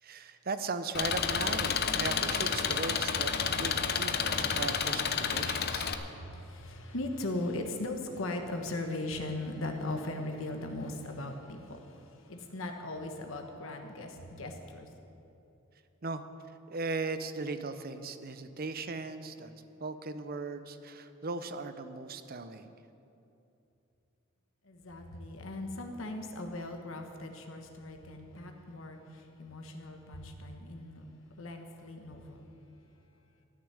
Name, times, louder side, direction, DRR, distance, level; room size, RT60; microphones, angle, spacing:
voice 1, 0.0-5.9 16.0-16.2 16.7-22.7, right 3 dB, 45° right, 11 dB, 0.7 m, -38 dB
Engine, 0.9-5.9, left 6 dB, 50° left, 0.7 m, -30 dB
voice 2, 5.9-14.9 24.6-31.1 31.4-32.5, left 2 dB, 70° left, 4 dB, 1.2 m, -39 dB
13.5 x 6.7 x 9.6 m, 2.8 s
head